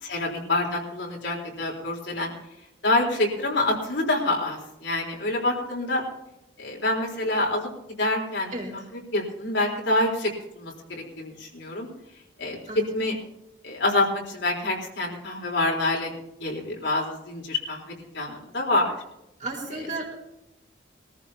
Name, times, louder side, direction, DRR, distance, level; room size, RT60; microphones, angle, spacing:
voice 1, 0.0-2.3 2.8-6.0 6.6-7.7 8.0-8.5 9.1-10.3 10.6-11.9 12.4-12.6 12.9-13.2 13.6-16.1 16.4-18.9, left 2 dB, 70° left, -1 dB, 4.0 m, -26 dB
voice 2, 12.7-13.0 19.4-20.0, right 2 dB, 40° right, -2 dB, 4.3 m, -33 dB
22.5 x 14.5 x 2.9 m, 0.84 s
head